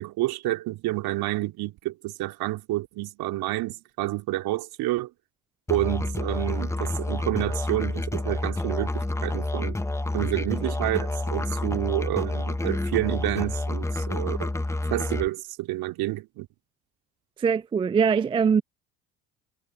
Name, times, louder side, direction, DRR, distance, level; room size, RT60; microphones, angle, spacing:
voice 1, 0.0-5.1 5.7-9.8 10.1-14.5 14.9-16.5, right 17 dB, 60° right, 3.2 m, -29 dB
Musical instrument, 5.7-15.3, left 2 dB, 5° left, 1.1 m, -29 dB
voice 2, 17.4-18.6, right 6 dB, 15° right, 0.3 m, -22 dB
hypercardioid pair, 65°, 41 cm